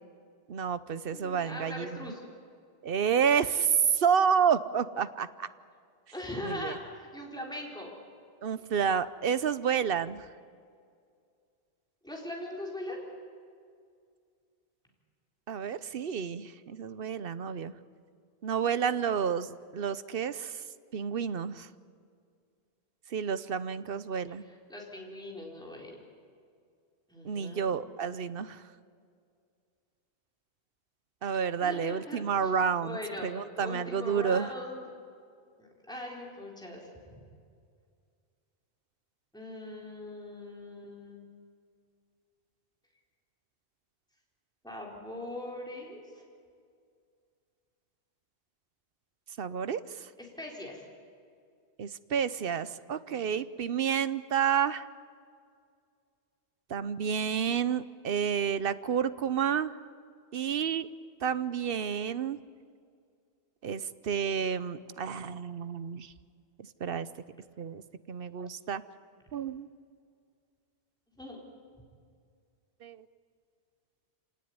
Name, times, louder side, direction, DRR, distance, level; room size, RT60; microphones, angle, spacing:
voice 1, 0.5-2.1 2.8-5.5 6.4-6.8 8.4-10.3 15.5-17.7 18.4-20.6 20.9-21.7 23.1-24.4 27.2-28.6 31.2-34.5 49.4-50.1 51.8-54.9 56.7-59.7 60.3-60.9 61.2-62.4 63.6-66.1 66.8-67.1 67.6-67.8 68.1-68.8 69.3-69.7 72.8-73.1, right 7 dB, 60° right, 14 dB, 0.9 m, -30 dB
voice 2, 1.1-2.2 6.1-8.0 12.0-13.0 24.4-26.0 27.1-27.8 31.6-32.5 32.8-34.8 35.6-36.9 39.3-41.3 44.6-46.2 50.2-50.8 71.2-71.4, left 1 dB, 5° left, -2 dB, 4.1 m, -41 dB
26.5 x 18.0 x 9.6 m, 2.2 s
omnidirectional pair, 1.1 m